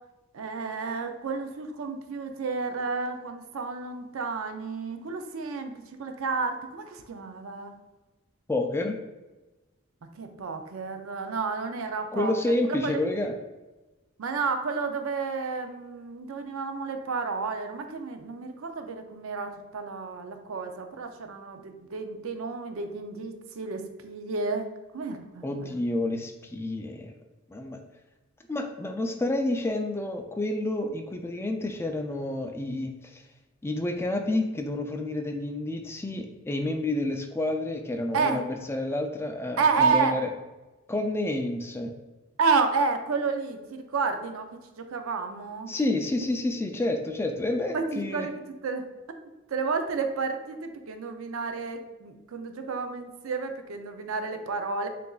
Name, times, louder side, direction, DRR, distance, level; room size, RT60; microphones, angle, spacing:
voice 1, 0.3-5.7 6.0-7.7 10.2-12.5 12.8-13.0 14.2-24.7 24.9-25.8 38.1-38.5 39.6-40.2 42.4-45.7 47.7-48.3 48.6-48.9 49.5-54.9, right 4 dB, 75° right, 6 dB, 0.5 m, -30 dB
voice 2, 8.5-9.0 12.1-13.3 25.4-27.2 27.5-27.8 28.5-33.2 33.6-40.3 40.9-41.9 45.7-48.3, left 2 dB, 10° left, 4 dB, 0.3 m, -29 dB
6.6 x 2.5 x 2.3 m, 1.1 s
head